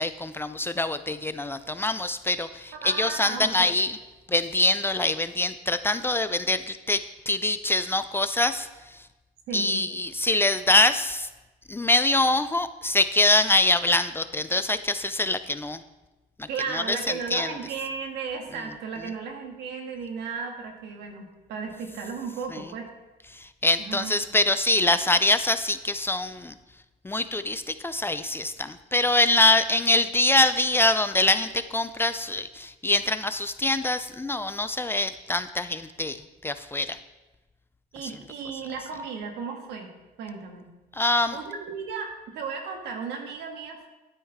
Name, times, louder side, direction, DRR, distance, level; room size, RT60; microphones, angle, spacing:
voice 1, 0.0-4.0 4.3-9.0 9.5-11.3 11.7-15.8 16.4-16.5 16.7-17.0 17.3-17.5 22.5-22.6 23.3-26.6 27.0-37.0 38.0-38.1 40.9-41.4, left 2 dB, 15° left, 11 dB, 0.4 m, -24 dB
voice 2, 2.8-3.7 9.5-9.9 16.5-22.9 23.8-24.1 37.9-39.9 40.2-40.7 41.3-43.9, right 5 dB, 80° right, 3 dB, 2.0 m, -35 dB
12.0 x 9.6 x 3.6 m, 1.1 s
cardioid pair, 110°, 17 cm